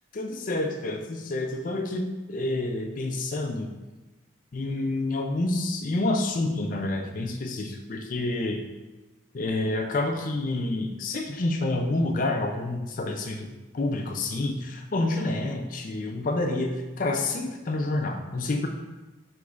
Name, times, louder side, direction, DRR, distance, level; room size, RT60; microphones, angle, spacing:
voice 1, 0.1-3.7 4.5-8.6 9.3-13.5 13.7-18.7, left 2 dB, 40° left, 4 dB, 0.4 m, -28 dB
6.4 x 3.1 x 2.4 m, 1.2 s
head